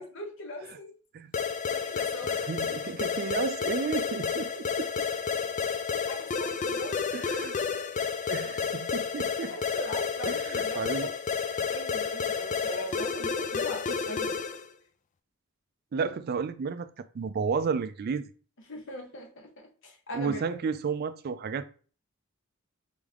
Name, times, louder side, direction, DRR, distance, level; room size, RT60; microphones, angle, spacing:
voice 1, 0.0-1.0 1.7-2.3 5.9-7.0 7.8-8.0 9.4-11.1 11.7-14.4 18.7-20.4, left 1 dB, 65° left, 1.3 m, -40 dB
sound 1, 1.3-14.7, left 6 dB, 35° left, 0.3 m, -31 dB
voice 2, 2.4-4.9 7.1-7.6 8.3-9.5 10.3-11.1 13.9-14.0 15.9-18.3 20.1-21.6, right 5 dB, 50° right, 0.3 m, -32 dB
4.1 x 3.4 x 3.6 m
head